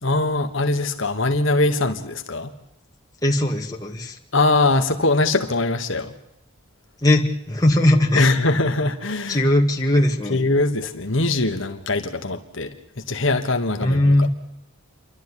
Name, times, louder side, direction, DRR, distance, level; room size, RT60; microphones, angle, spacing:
voice 1, 0.0-2.5 4.3-6.1 8.2-9.4 10.3-14.1, left 2 dB, 55° left, 5 dB, 1.4 m, -22 dB
voice 2, 3.2-4.2 7.0-8.3 9.3-10.4 13.8-14.3, left 1 dB, 15° left, 0 dB, 2.1 m, -19 dB
28.5 x 12.0 x 10.0 m, 0.82 s
head